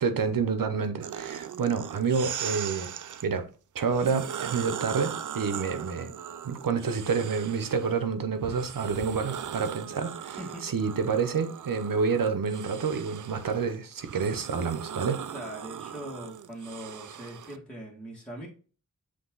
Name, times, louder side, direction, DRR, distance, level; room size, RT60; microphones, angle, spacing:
voice 1, 0.0-2.9 3.2-3.5 3.7-6.1 6.4-15.2, right 5 dB, 85° right, 0.9 m, -28 dB
sound 1, 1.0-3.3 3.9-7.9 8.4-17.6, right 9 dB, 65° right, 0.5 m, -39 dB
voice 2, 15.3-18.5, right 1 dB, 5° left, 2.4 m, -41 dB
7.7 x 3.3 x 3.9 m
wide cardioid pair, 90°, 33 cm